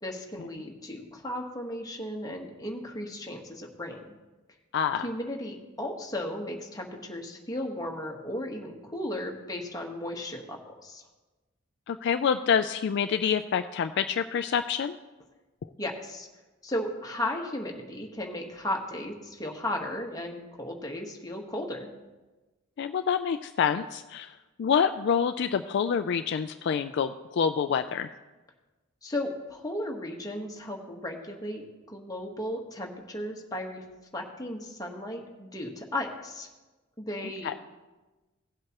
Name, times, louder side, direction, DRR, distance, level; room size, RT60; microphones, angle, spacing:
voice 1, 0.0-4.0 5.0-11.0 15.8-16.3 16.6-21.9 29.0-33.8 34.1-36.5 37.0-37.6, left 1 dB, 20° left, 1 dB, 1.2 m, -35 dB
voice 2, 4.7-5.1 11.9-14.9 22.8-24.3 24.6-28.1 37.4-37.5, left 7 dB, 55° left, 9 dB, 0.3 m, -27 dB
17.0 x 7.7 x 2.9 m, 1.2 s
head